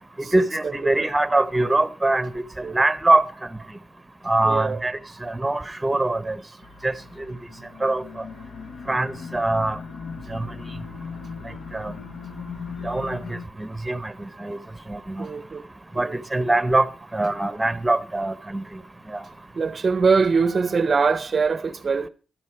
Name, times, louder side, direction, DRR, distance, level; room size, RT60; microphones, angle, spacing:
voice 1, 0.2-2.3 2.7-3.3 4.3-6.4 6.8-6.9 7.3-7.4 7.8-8.0 8.9-9.8 10.3-10.5 11.7-11.9 12.8-14.1 14.4-14.6 14.9-15.3 16.0-16.9 17.1-18.6, right 2 dB, 10° right, 0.8 m, -23 dB
voice 2, 4.4-4.8 15.2-15.6 16.0-16.2 19.6-22.1, right 5 dB, 40° right, 0.6 m, -22 dB
sound 1, 6.6-13.5, left 5 dB, 90° left, 1.2 m, -38 dB
13.5 x 12.0 x 4.5 m
cardioid pair, 105°, 0 cm